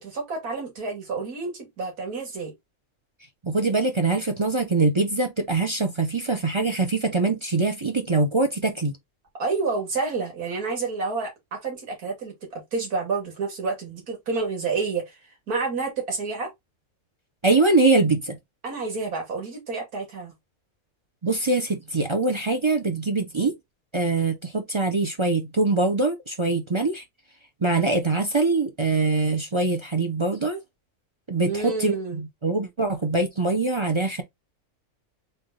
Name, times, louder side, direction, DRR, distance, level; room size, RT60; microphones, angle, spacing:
voice 1, 0.0-2.5 9.4-15.2 15.5-16.5 18.6-20.3 31.4-32.2, right 4 dB, 80° right, 2.4 m, -29 dB
voice 2, 3.4-8.9 17.4-18.4 21.2-23.5 23.9-27.0 27.6-30.6 31.3-34.2, right 3 dB, 30° right, 0.6 m, -23 dB
3.8 x 3.4 x 3.9 m
omnidirectional pair, 1.6 m